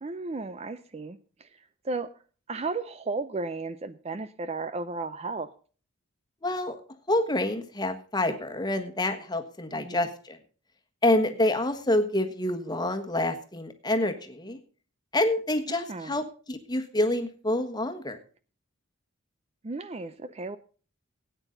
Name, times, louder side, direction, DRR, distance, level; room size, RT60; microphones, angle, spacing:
voice 1, 0.0-2.1 2.5-5.5 9.7-10.1 15.7-16.2 19.6-20.6, right 3 dB, 30° right, 13 dB, 0.5 m, -34 dB
voice 2, 6.4-6.8 7.1-10.4 11.0-14.6 15.1-16.2 16.5-18.2, left 1 dB, 20° left, 6 dB, 1.4 m, -27 dB
17.5 x 9.1 x 3.9 m, 0.39 s
head